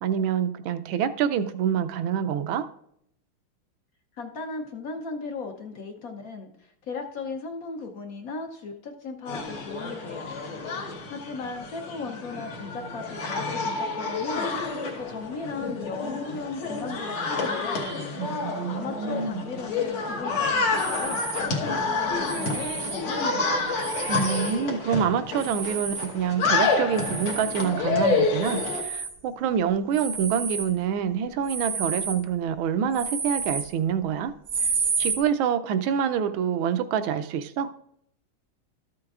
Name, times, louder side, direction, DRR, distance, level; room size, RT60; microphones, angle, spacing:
voice 1, 0.0-2.6 18.2-19.5 23.7-34.3 35.0-37.7, right 8 dB, 80° right, 10 dB, 1.4 m, -26 dB
voice 2, 4.2-10.3 11.1-14.5 14.9-17.9 18.7-23.6, left 4 dB, 65° left, 4 dB, 0.8 m, -37 dB
sound 1, 9.3-28.8, left 3 dB, 80° left, 2.2 m, -29 dB
sound 2, 20.7-21.5 22.2-23.0 23.8-24.6 25.4-26.1 26.9-27.7 28.4-29.1 29.9-30.7 31.4-32.2 32.9-33.7 34.5-35.2, right 5 dB, 50° right, 0.7 m, -31 dB
13.0 x 7.7 x 2.4 m, 0.70 s
omnidirectional pair, 2.3 m